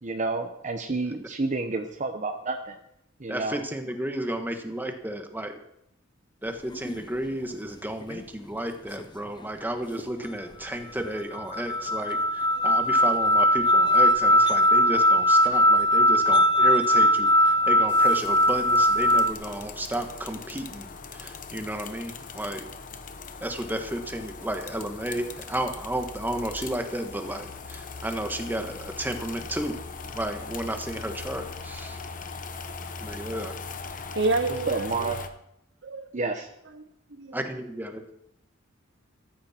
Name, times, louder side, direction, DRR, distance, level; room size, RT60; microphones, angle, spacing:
voice 1, 0.0-2.7 3.2-3.6 34.7-35.2 36.1-36.5, right 3 dB, 40° right, 6 dB, 0.9 m, -29 dB
voice 2, 3.3-5.5 6.4-22.7 23.4-29.8 30.1-32.0 33.0-33.6 37.3-38.0, right 1 dB, 10° right, 5 dB, 1.5 m, -32 dB
sound 1, 6.7-7.0 8.0-8.2 9.0-9.1 10.0-10.1 11.0-11.1 11.3-19.3, equal, 25° left, 0.6 m, -20 dB
sound 2, 17.9-35.3, left 4 dB, 45° left, 1.0 m, -40 dB
voice 3, 34.1-35.1 35.8-36.1 36.7-36.8 37.1-37.4, right 3 dB, 65° right, 10 dB, 0.8 m, -28 dB
14.0 x 14.0 x 4.4 m, 0.77 s
head